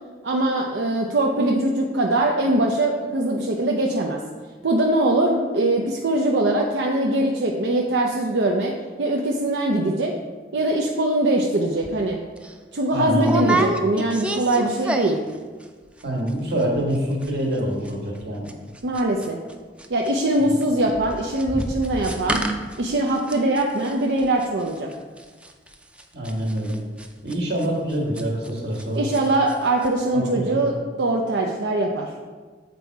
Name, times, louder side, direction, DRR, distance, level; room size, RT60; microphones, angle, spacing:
voice 1, 0.2-4.2 4.6-8.7 9.0-10.1 10.5-12.2 12.7-15.2 18.8-19.4 19.9-22.4 22.8-24.9 28.9-32.1, right 1 dB, 90° right, 0 dB, 0.6 m, -22 dB
sound 1, 11.8-12.0 12.4-12.5 13.2-15.4 15.6-16.0 16.3-16.4 16.6-17.0 17.2-19.5 19.8-28.8 29.1-29.6 29.8-29.9, right 2 dB, 5° right, 0.4 m, -29 dB
voice 2, 12.9-13.5 16.0-18.5 20.4-20.5 26.1-26.8 27.2-29.1 30.1-30.6, right 1 dB, 65° right, -2 dB, 1.6 m, -26 dB
7.6 x 4.1 x 4.6 m, 1.4 s
head